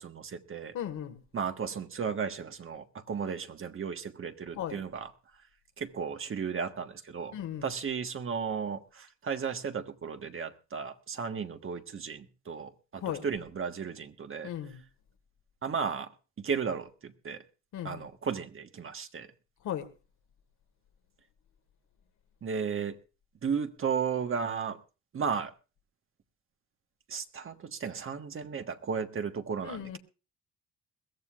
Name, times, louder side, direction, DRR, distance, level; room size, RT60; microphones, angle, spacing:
voice 1, 0.0-0.7 1.3-5.1 5.8-7.3 7.6-14.5 15.6-16.1 16.4-17.4 17.8-19.3 22.4-23.0 23.4-24.8 25.1-25.5 27.1-30.0, right 6 dB, 45° right, 1.4 m, -34 dB
voice 2, 0.7-1.2 4.5-4.8 7.3-7.7 13.0-13.3 14.4-14.8 17.7-18.1 19.6-19.9 29.6-30.0, left 10 dB, 80° left, 1.9 m, -36 dB
22.0 x 15.0 x 2.4 m
cardioid pair, 90°, 30 cm